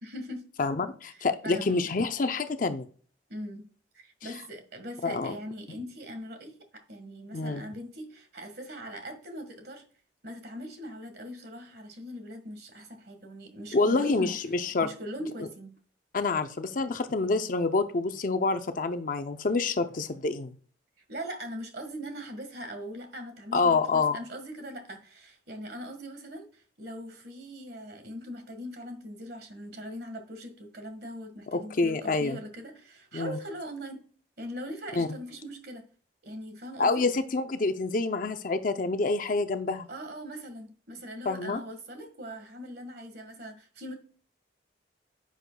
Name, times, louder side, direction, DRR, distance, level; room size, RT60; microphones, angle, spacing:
voice 1, 0.0-0.4 1.1-1.9 3.3-3.6 3.9-9.8 10.2-14.3 14.8-15.7 21.1-34.0 34.4-35.9 36.2-37.0 39.9-44.0, equal, 60° right, 7 dB, 1.6 m, -41 dB
voice 2, 0.6-2.9 5.0-5.3 7.3-7.7 13.7-14.9 16.1-20.5 23.5-24.2 31.5-32.4 33.1-33.4 35.0-35.1 36.8-39.9 41.3-41.6, left 3 dB, 45° left, 9 dB, 0.5 m, -27 dB
10.0 x 6.4 x 2.3 m, 0.43 s
head